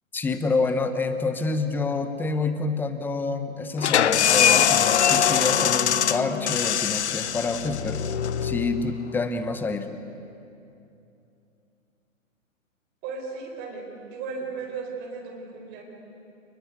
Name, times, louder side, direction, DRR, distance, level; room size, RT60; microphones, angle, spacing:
voice 1, 0.1-8.0 8.4-9.9, left 3 dB, 5° left, 9 dB, 1.0 m, -27 dB
sound 1, 3.8-9.2, left 9 dB, 55° left, 1.1 m, -22 dB
voice 2, 13.0-15.8, right 4 dB, 25° right, 0 dB, 4.5 m, -35 dB
28.5 x 21.5 x 9.6 m, 2.7 s
figure-of-eight pair, 130°, 40 cm